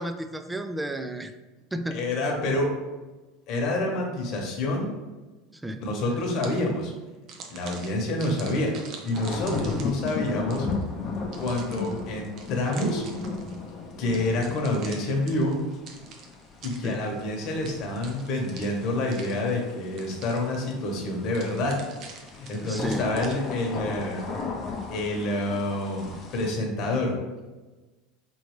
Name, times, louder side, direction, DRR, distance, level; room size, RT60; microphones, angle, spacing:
voice 1, 0.0-1.3 1.7-2.1 5.5-5.8 16.8-17.0 22.6-23.1, right 1 dB, 10° right, 8 dB, 0.3 m, -32 dB
voice 2, 1.9-2.7 3.5-4.9 5.8-6.9 7.5-8.7 9.0-10.7 11.3-13.0 14.0-15.6 16.6-21.8 22.4-24.2 24.9-27.2, left 2 dB, 50° left, 1 dB, 1.1 m, -27 dB
sound 1, 6.1-6.8 7.3-10.9 11.3-13.6 14.1-17.2 17.6-19.7 20.0-20.7 21.3-23.6, right 4 dB, 50° right, 0.7 m, -46 dB
sound 2, 9.1-26.5, left 4 dB, 35° left, 0.7 m, -36 dB
4.2 x 3.1 x 3.1 m, 1.2 s
supercardioid pair, 120°, 0 cm